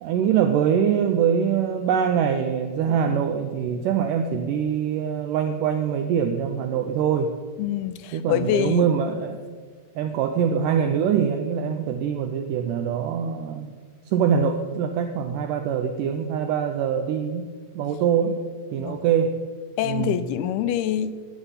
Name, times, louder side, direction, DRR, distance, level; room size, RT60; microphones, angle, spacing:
voice 1, 0.0-7.3 8.1-9.4 10.0-13.8 14.1-17.5 17.8-18.4 18.7-19.4 19.8-20.2, right 8 dB, 85° right, 6 dB, 1.9 m, -23 dB
voice 2, 7.6-8.9 18.8-19.0 19.8-21.1, left 11 dB, 85° left, 12 dB, 2.5 m, -25 dB
12.5 x 9.4 x 5.7 m, 1.6 s
omnidirectional pair, 4.5 m